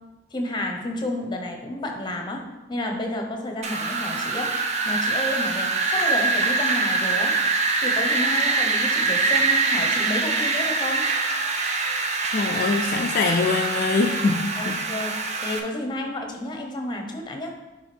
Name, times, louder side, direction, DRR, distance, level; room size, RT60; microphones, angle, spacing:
voice 1, 0.3-2.4 2.7-7.3 7.8-11.0 14.5-15.1 15.4-17.5, left 1 dB, 25° left, 2 dB, 0.8 m, -31 dB
Wind, 3.6-15.6, right 3 dB, 35° right, 0.6 m, -24 dB
voice 2, 12.3-14.8, left 4 dB, 50° left, 2 dB, 0.3 m, -23 dB
10.0 x 3.5 x 3.3 m, 1.1 s
head